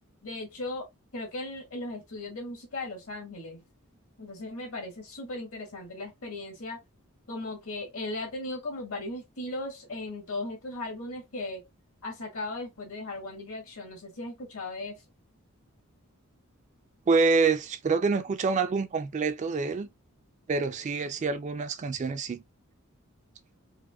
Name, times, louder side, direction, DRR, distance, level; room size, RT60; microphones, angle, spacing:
voice 1, 0.2-0.8 1.1-3.6 4.2-6.8 7.3-11.6 12.0-15.0, left 2 dB, 70° left, 1.7 m, -37 dB
voice 2, 17.1-19.9 20.5-22.4, right 4 dB, 35° right, 0.3 m, -26 dB
4.7 x 2.1 x 2.2 m
head